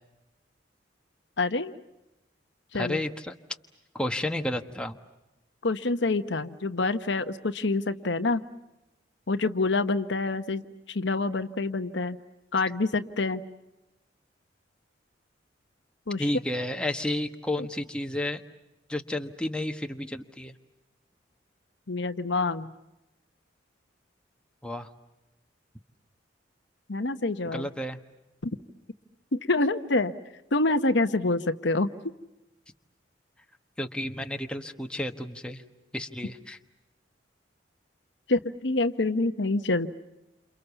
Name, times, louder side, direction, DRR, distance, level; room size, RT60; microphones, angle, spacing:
voice 1, 1.4-1.7 2.7-3.0 5.6-8.4 9.3-12.2 12.5-13.4 16.1-16.3 17.6-17.7 21.9-22.7 26.9-27.7 28.4-28.5 29.3-30.1 30.5-31.9 38.3-39.9, left 3 dB, 70° left, 10 dB, 1.1 m, -27 dB
voice 2, 2.7-3.3 3.9-5.0 16.2-18.4 18.9-20.6 24.6-24.9 27.5-28.0 33.8-35.6 35.9-36.6, left 1 dB, 5° left, 5 dB, 1.3 m, -31 dB
29.0 x 28.5 x 7.0 m, 0.95 s
head